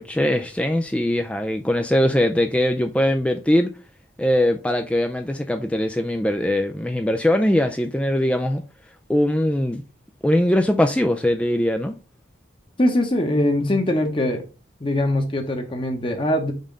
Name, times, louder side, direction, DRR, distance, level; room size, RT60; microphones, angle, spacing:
voice 1, 0.0-3.7 4.2-8.6 9.1-9.8 10.2-11.9, left 1 dB, 5° left, 0.3 m, -21 dB
voice 2, 12.8-14.4 14.8-16.5, left 1 dB, 25° left, 0.9 m, -22 dB
5.5 x 3.6 x 5.2 m
head